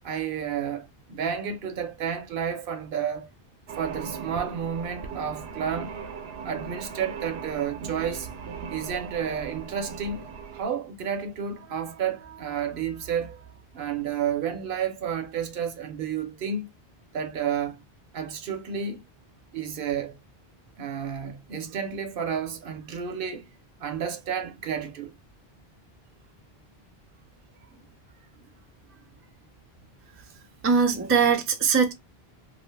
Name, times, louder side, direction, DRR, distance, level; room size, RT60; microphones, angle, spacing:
voice 1, 0.0-3.3 3.8-6.0 6.4-8.3 8.7-10.3 10.5-16.7 17.1-17.8 18.1-19.0 19.5-20.2 20.8-23.5 23.8-25.1 27.7-27.8 28.4-28.6 28.9-29.0, right 7 dB, 65° right, 0.8 m, -31 dB
sound 1, 3.7-10.6, right 6 dB, 90° right, 0.9 m, -38 dB
voice 2, 30.6-31.9, right 6 dB, 25° right, 0.3 m, -21 dB
2.5 x 2.4 x 3.2 m
omnidirectional pair, 1.0 m